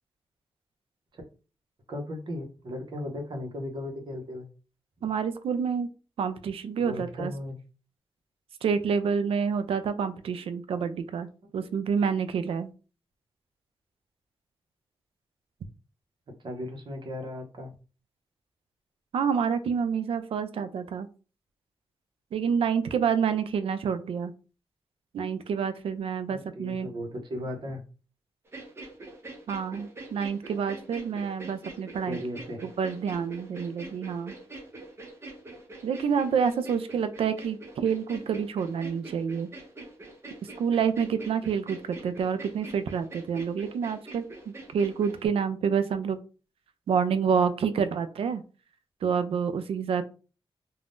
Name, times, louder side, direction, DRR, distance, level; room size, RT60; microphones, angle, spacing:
voice 1, 1.9-4.5 6.8-7.6 16.4-17.7 26.3-27.8 32.1-32.6, left 1 dB, 55° right, 2 dB, 0.8 m, -36 dB
voice 2, 5.0-5.9 6.2-7.3 8.6-11.3 11.5-12.7 19.1-21.1 22.3-24.3 25.1-26.9 29.5-32.2 32.6-34.3 35.8-39.5 40.6-46.2 46.9-48.4 49.0-50.0, right 6 dB, 85° right, 11 dB, 0.4 m, -28 dB
sound 1, 28.5-45.3, right 2 dB, 25° right, 0.6 m, -44 dB
2.5 x 2.2 x 3.4 m, 0.36 s
wide cardioid pair, 155°, 9 cm